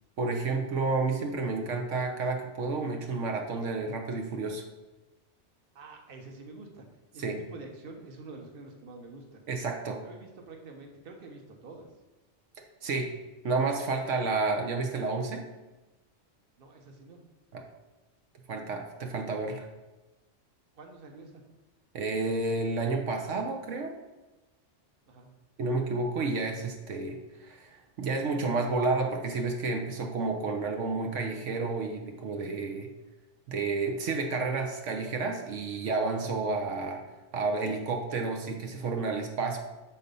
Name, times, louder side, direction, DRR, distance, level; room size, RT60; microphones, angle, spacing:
voice 1, 0.2-4.7 7.2-7.4 9.5-10.0 12.8-13.1 13.4-15.4 17.5-17.6 18.5-19.7 21.9-24.0 25.6-32.9 33.5-37.0 37.3-39.6, right 3 dB, 80° right, 3 dB, 1.1 m, -30 dB
voice 2, 5.7-6.9 7.1-9.4 10.0-11.9 16.6-17.2 20.7-21.4 25.1-25.3, right 3 dB, 50° right, 3 dB, 1.1 m, -47 dB
7.6 x 4.0 x 5.3 m, 1.1 s
omnidirectional pair, 1.2 m